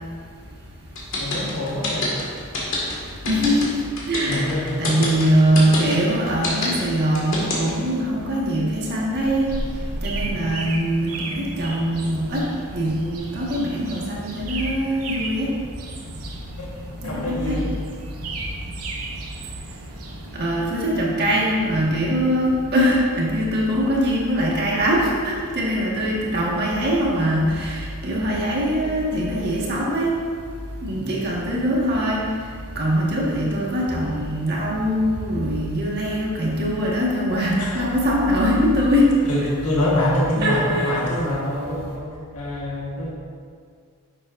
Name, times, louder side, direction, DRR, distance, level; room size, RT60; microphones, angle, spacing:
sound 1, 1.0-7.9, left 2 dB, 60° left, 2.0 m, -26 dB
voice 1, 1.2-2.2 4.2-5.0 10.2-10.5 16.6-16.7 17.0-17.7 30.9-31.1 37.6-37.9 39.2-43.1, left 1 dB, 90° left, -5 dB, 1.5 m, -25 dB
voice 2, 3.2-3.8 4.1-9.5 10.0-12.4 12.7-15.5 17.0-17.6 20.4-30.1 30.8-32.2 32.7-39.0 40.4-41.0, equal, 50° right, -5 dB, 1.7 m, -22 dB
sound 2, 9.2-20.4, right 2 dB, 80° right, 1.0 m, -34 dB
10.5 x 7.6 x 2.6 m, 2.1 s
head